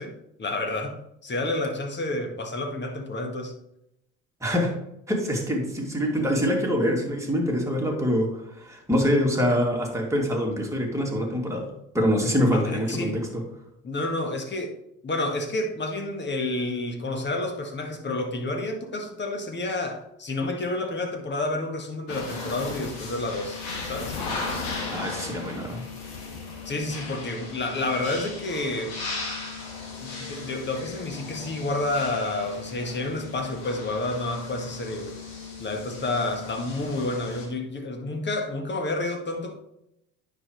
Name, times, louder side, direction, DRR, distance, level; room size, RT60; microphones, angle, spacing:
voice 1, 0.0-3.6 12.5-13.2 13.8-14.8 15.0-24.1 26.7-29.0 30.0-35.1 35.6-39.6, left 2 dB, 25° left, 4 dB, 1.7 m, -30 dB
voice 2, 4.4-4.7 5.1-11.7 11.9-13.4 24.9-25.8, equal, 5° right, -1 dB, 2.5 m, -25 dB
sound 1, 22.1-37.5, left 4 dB, 70° left, 2.3 m, -36 dB
9.5 x 6.5 x 3.2 m, 0.82 s
hypercardioid pair, 70°, 43 cm